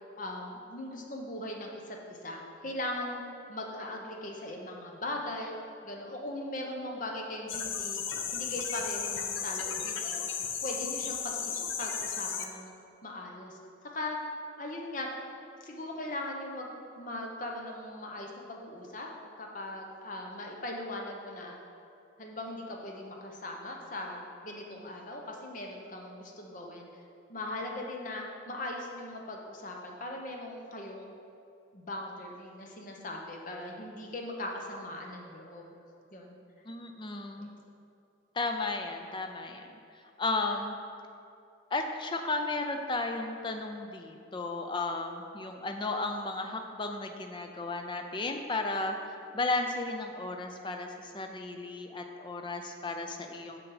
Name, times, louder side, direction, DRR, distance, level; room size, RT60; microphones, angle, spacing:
voice 1, 0.2-3.2 3.5-5.6 5.8-8.0 8.3-10.3 10.6-12.7 13.0-13.6 13.9-14.2 14.6-15.1 15.6-19.1 19.4-21.6 22.2-26.9 27.3-31.1 31.7-35.7 36.1-36.3 37.4-37.5, left 1 dB, 40° left, 0 dB, 0.8 m, -39 dB
sound 1, 7.5-12.4, left 7 dB, 85° left, 0.6 m, -34 dB
voice 2, 36.7-37.5 38.4-39.7 40.2-40.8 41.7-49.0 49.3-53.6, left 3 dB, 25° left, 4 dB, 0.5 m, -34 dB
6.3 x 6.1 x 4.8 m, 2.6 s
head